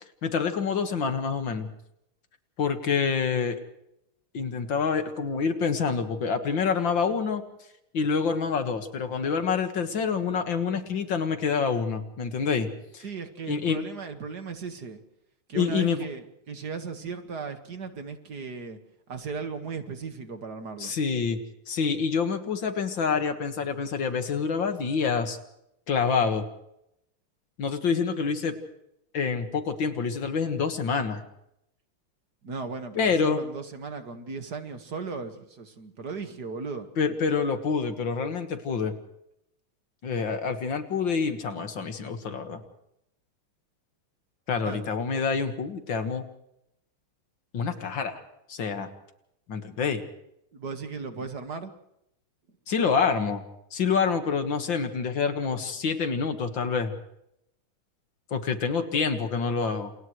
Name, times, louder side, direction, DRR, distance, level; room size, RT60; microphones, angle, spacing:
voice 1, 0.2-1.7 2.6-3.6 4.3-7.4 7.9-13.0 13.5-13.8 15.5-16.0 20.8-21.4 21.7-25.4 25.9-26.4 27.6-28.6 29.1-31.2 32.9-33.4 37.0-38.9 40.0-42.6 44.5-46.2 47.5-48.2 48.5-48.9 49.5-50.0 52.7-53.4 53.7-56.9 58.3-59.9, left 5 dB, 65° left, 7 dB, 2.4 m, -27 dB
voice 2, 13.0-15.0 15.5-18.8 19.1-20.9 32.4-36.9 44.6-44.9 50.5-51.7, right 5 dB, 50° right, 7 dB, 2.2 m, -36 dB
29.0 x 28.5 x 3.2 m, 0.81 s
omnidirectional pair, 2.3 m